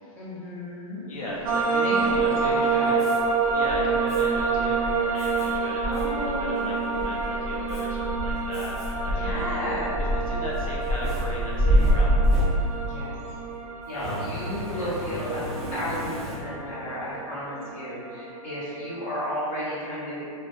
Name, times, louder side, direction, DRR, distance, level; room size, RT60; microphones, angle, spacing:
voice 1, 0.1-1.1 1.8-3.0 5.8-7.1 9.0-10.0 11.6-12.0 12.8-13.1 13.8-15.4 15.7-20.2, equal, 25° left, -10 dB, 0.7 m, -33 dB
voice 2, 1.1-3.0 3.5-9.7 10.0-12.3 13.9-14.4 14.7-14.9, equal, 70° left, -5 dB, 0.7 m, -37 dB
sound 1, 1.4-19.2, right 5 dB, 90° right, 0.4 m, -28 dB
sound 2, 1.5-1.6 2.1-2.7 3.2-12.4, equal, 25° right, 0.8 m, -27 dB
Fire, 3.0-3.2 4.1-4.2 5.1-5.5 5.9-6.0 6.6-7.0 7.7-7.8 8.5-8.9 9.4-9.5 10.5-13.0 13.9-16.7, equal, ahead, 0.4 m, -38 dB
2.1 x 2.1 x 2.8 m, 2.5 s
hypercardioid pair, 175°, 18 cm